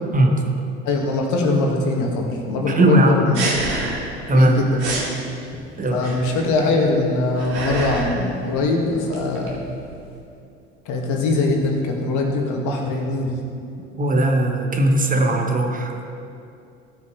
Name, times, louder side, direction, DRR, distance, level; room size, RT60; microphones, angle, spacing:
voice 1, 0.8-3.6 4.3-4.9 5.9-9.7 10.9-13.4, left 2 dB, 55° left, 0 dB, 2.0 m, -22 dB
voice 2, 2.7-3.2 4.3-4.6 5.8-6.0 14.0-16.1, right 1 dB, 25° right, 2 dB, 1.4 m, -18 dB
sound 1, 3.3-4.2 4.4-4.5 4.8-5.1 6.0-6.5 7.1-8.2 8.5-10.1, right 2 dB, 75° right, 2.7 m, -28 dB
16.5 x 6.3 x 4.7 m, 2.5 s
hypercardioid pair, 70°, 35 cm